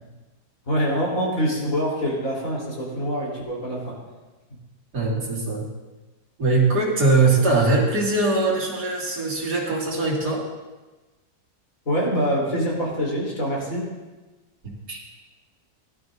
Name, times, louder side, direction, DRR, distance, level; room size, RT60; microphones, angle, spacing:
voice 1, 0.7-4.0 11.9-13.9, equal, 55° left, -4 dB, 4.0 m, -25 dB
voice 2, 4.9-5.7 6.4-10.4 14.6-15.0, right 3 dB, 85° right, -3 dB, 2.8 m, -21 dB
17.5 x 12.0 x 2.6 m, 1.2 s
omnidirectional pair, 1.7 m